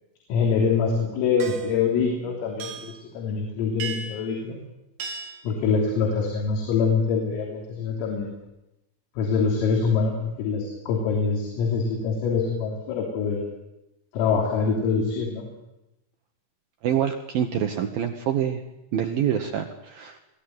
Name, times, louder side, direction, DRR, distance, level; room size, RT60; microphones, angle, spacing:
voice 1, 0.3-4.6 5.4-8.3 9.2-13.4 14.1-15.5, left 5 dB, 85° left, 0 dB, 5.9 m, -24 dB
sound 1, 1.4-1.8 2.6-3.0 3.8-4.3 5.0-5.5, right 5 dB, 60° right, 3.6 m, -35 dB
voice 2, 16.8-18.6 18.9-20.2, right 9 dB, 80° right, 5 dB, 2.1 m, -26 dB
23.5 x 16.0 x 9.2 m, 0.94 s
omnidirectional pair, 5.9 m